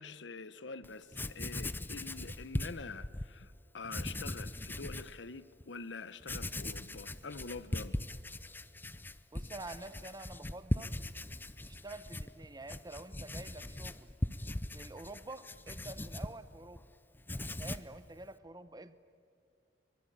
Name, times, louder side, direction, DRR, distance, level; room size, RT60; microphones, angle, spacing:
voice 1, 0.0-7.9, left 4 dB, 80° left, 0.9 m, -46 dB
Writing, 0.8-3.3 3.8-5.1 5.6-5.7 6.2-16.9 17.2-18.0, left 1 dB, 10° left, 0.6 m, -40 dB
voice 2, 9.3-11.0 11.6-14.1 14.7-16.8 17.3-19.0, right 2 dB, 20° right, 0.9 m, -48 dB
23.5 x 23.0 x 8.8 m
head